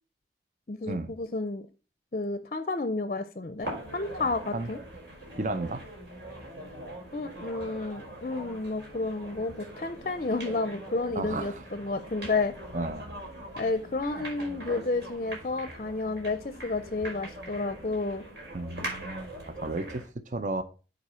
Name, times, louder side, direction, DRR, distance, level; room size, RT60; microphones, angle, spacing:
voice 1, 0.7-1.7 2.1-4.8 7.1-12.5 13.6-18.3, left 3 dB, 40° left, 0.5 m, -31 dB
sound 1, 3.6-20.1, right 1 dB, 65° right, 4.2 m, -42 dB
voice 2, 5.3-5.8 11.1-11.6 12.7-13.2 18.5-20.6, right 2 dB, 45° right, 0.7 m, -33 dB
7.9 x 4.0 x 5.6 m
head